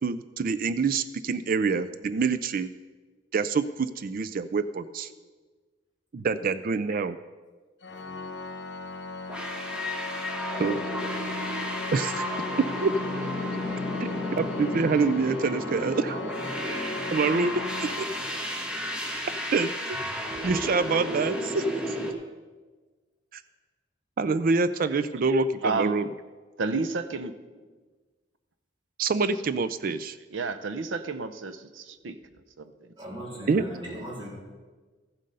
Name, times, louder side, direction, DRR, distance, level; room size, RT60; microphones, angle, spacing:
voice 1, 0.0-2.7 3.3-5.1 6.1-7.2 10.6-10.8 11.9-12.2 12.8-12.9 14.0-14.1 14.4-16.2 17.1-17.5 17.8-18.1 19.5-20.0 20.4-22.0 23.3-23.4 24.2-26.0 29.0-30.2 33.5-33.6, right 4 dB, 50° right, 14 dB, 0.4 m, -26 dB
Organ, 7.8-18.8, left 3 dB, 65° left, 1.2 m, -37 dB
sound 1, 9.3-22.1, equal, 5° right, 1.2 m, -33 dB
voice 2, 25.6-26.0 26.6-27.4 29.3-29.4 30.3-32.2 32.6-33.2, right 3 dB, 80° right, 12 dB, 0.7 m, -31 dB
voice 3, 33.0-34.3, right 1 dB, 25° right, -5 dB, 3.6 m, -38 dB
14.0 x 7.5 x 5.4 m, 1.3 s
head